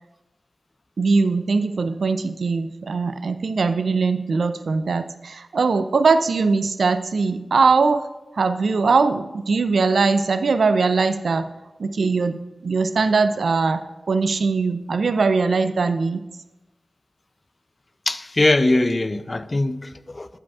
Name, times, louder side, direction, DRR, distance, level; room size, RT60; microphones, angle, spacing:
voice 1, 1.0-8.1 8.4-11.5 11.8-13.8 14.1-16.2, right 4 dB, 85° right, 0.4 m, -21 dB
voice 2, 18.1-20.3, left 2 dB, 40° left, 0.4 m, -21 dB
13.5 x 5.0 x 2.4 m
cardioid pair, 55°, 0 cm